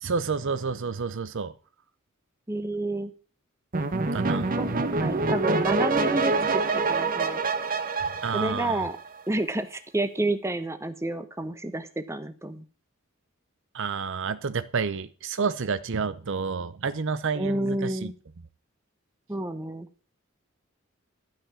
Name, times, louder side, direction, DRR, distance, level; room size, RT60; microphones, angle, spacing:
voice 1, 0.0-1.5 4.1-4.5 8.2-8.8 13.7-18.1, right 5 dB, 65° right, 14 dB, 0.7 m, -29 dB
voice 2, 2.5-3.1 4.5-4.7 5.0-6.6 6.9-7.4 8.3-9.0 9.3-12.6 17.3-18.1 19.3-19.9, right 1 dB, 15° right, 10 dB, 1.0 m, -30 dB
sound 1, 3.7-9.2, right 3 dB, 45° right, 1.1 m, -26 dB
13.0 x 5.7 x 7.2 m, 0.39 s
head